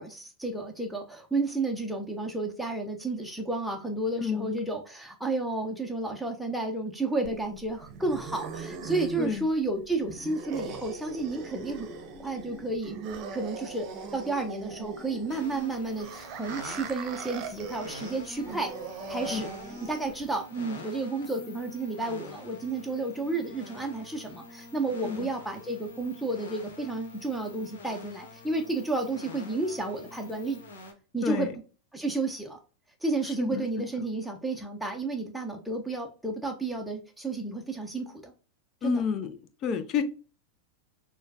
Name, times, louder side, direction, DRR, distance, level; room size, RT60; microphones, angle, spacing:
voice 1, 0.0-11.9 12.2-12.9 13.3-18.7 19.1-19.5 19.8-30.6 31.1-31.5 31.9-32.6 33.0-38.3 38.8-39.0, right 2 dB, ahead, 4 dB, 0.7 m, -31 dB
voice 2, 4.2-4.6 9.2-9.5 19.3-19.5 25.0-25.3 31.2-31.5 33.4-33.6 34.0-34.1 38.8-39.3 39.6-40.0, left 7 dB, 35° left, 10 dB, 0.6 m, -30 dB
sound 1, 7.2-20.2, right 4 dB, 40° right, 0.8 m, -40 dB
sound 2, 15.3-30.9, left 2 dB, 60° left, 1.2 m, -46 dB
6.4 x 2.3 x 2.8 m, 0.36 s
figure-of-eight pair, 90°, 0 cm